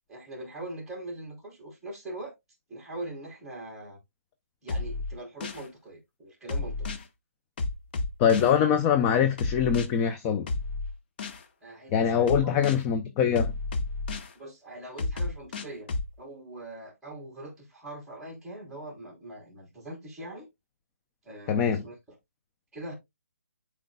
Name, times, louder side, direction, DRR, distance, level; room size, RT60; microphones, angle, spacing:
voice 1, 0.1-2.3 2.7-4.0 4.6-6.9 11.6-12.6 14.3-15.9 16.2-20.5 21.2-21.9 22.7-22.9, right 1 dB, 5° right, 3.5 m, -42 dB
sound 1, 4.7-5.7 6.5-7.1 7.6-8.5 9.4-9.9 10.5-11.4 12.3-12.8 13.4-14.3 15.0-16.1, left 3 dB, 40° left, 1.2 m, -31 dB
voice 2, 8.2-10.5 11.9-13.5 21.5-21.8, left 8 dB, 15° left, 0.5 m, -23 dB
11.5 x 4.4 x 2.3 m
hypercardioid pair, 155°, 8 cm